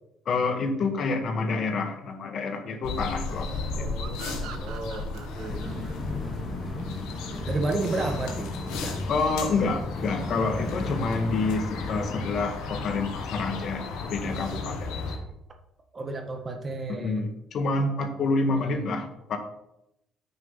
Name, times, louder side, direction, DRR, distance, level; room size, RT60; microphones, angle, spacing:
voice 1, 0.3-3.5 3.8-3.9 9.1-14.9 16.9-19.4, left 3 dB, 60° left, 5 dB, 1.7 m, -28 dB
sound 1, 2.8-15.2, left 3 dB, 85° left, 1.8 m, -35 dB
voice 2, 3.7-6.5 7.4-9.0 15.9-17.3 18.7-19.0, right 2 dB, 35° right, 5 dB, 1.7 m, -33 dB
sound 2, 4.0-7.4, right 9 dB, 80° right, 1.0 m, -45 dB
sound 3, 5.4-12.5, left 2 dB, 25° left, 2.6 m, -35 dB
8.8 x 6.2 x 5.8 m, 0.83 s
cardioid pair, 85°, 0 cm